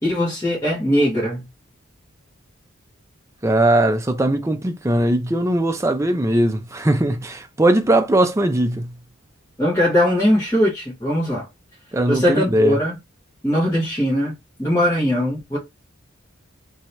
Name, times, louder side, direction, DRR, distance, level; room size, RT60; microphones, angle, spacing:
voice 1, 0.0-1.4 9.6-11.5 12.1-13.0 13.4-14.3 14.6-15.6, equal, 15° left, 1.2 m, -20 dB
voice 2, 3.4-8.9 11.9-12.8, right 1 dB, 15° right, 0.4 m, -19 dB
2.8 x 2.7 x 3.2 m
head